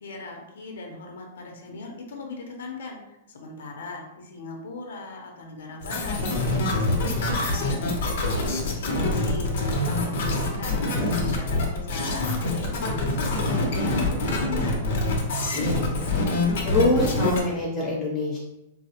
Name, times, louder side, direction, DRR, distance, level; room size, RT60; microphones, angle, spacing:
voice 1, 0.0-3.0 3.3-9.5 9.9-14.9, left 3 dB, 85° left, 2 dB, 0.6 m, -38 dB
sound 1, 5.8-17.4, left 2 dB, 50° left, 0.7 m, -25 dB
voice 2, 15.5-16.1 16.6-18.4, left 2 dB, 15° left, -4 dB, 0.8 m, -25 dB
3.8 x 2.0 x 2.8 m, 0.92 s
supercardioid pair, 175°, 0 cm